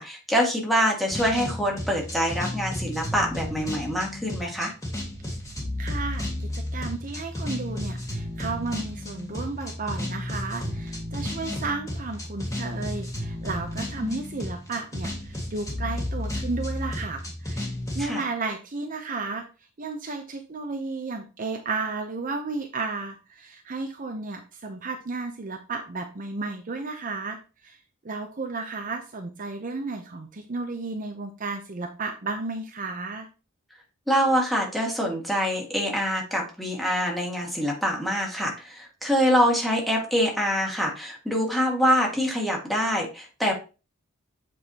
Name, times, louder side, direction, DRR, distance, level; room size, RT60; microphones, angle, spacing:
voice 1, 0.0-4.7 14.0-14.2 18.0-18.2 34.1-43.5, equal, ahead, -1 dB, 1.8 m, -25 dB
sound 1, 1.1-18.1, left 1 dB, 15° left, 1.8 m, -33 dB
voice 2, 5.8-19.5 19.8-27.4 27.6-27.8 28.0-33.3, right 3 dB, 40° right, 4 dB, 0.7 m, -33 dB
8.1 x 4.7 x 2.9 m, 0.32 s
head